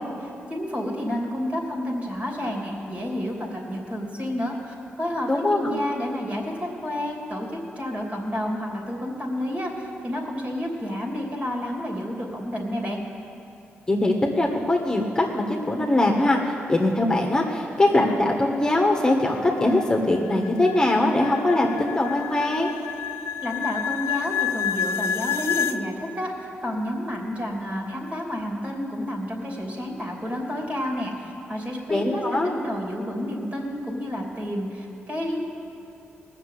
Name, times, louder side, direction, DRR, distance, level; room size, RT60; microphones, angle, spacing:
voice 1, 0.5-7.5 7.7-13.0 23.4-35.4, left 1 dB, 35° right, -1 dB, 3.1 m, -30 dB
voice 2, 5.3-5.7 13.9-22.7 31.9-32.5, left 2 dB, 15° left, 0 dB, 1.5 m, -22 dB
sound 1, 18.6-25.8, left 8 dB, 80° left, 0.5 m, -29 dB
19.0 x 6.9 x 8.4 m, 2.7 s
cardioid pair, 85°, 4 cm